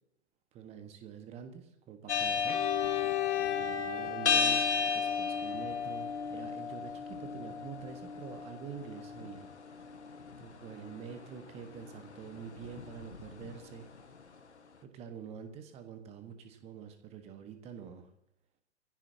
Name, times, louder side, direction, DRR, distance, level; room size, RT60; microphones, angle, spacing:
voice 1, 0.5-2.6 3.5-9.5 10.4-13.9 14.8-18.1, right 7 dB, 20° right, 7 dB, 1.5 m, -46 dB
sound 1, 2.1-14.2, left 5 dB, 70° left, 1.7 m, -35 dB
Bowed string instrument, 2.5-6.3, left 11 dB, 25° left, 1.6 m, -36 dB
23.0 x 16.5 x 2.9 m, 0.82 s
figure-of-eight pair, 120°, 35 cm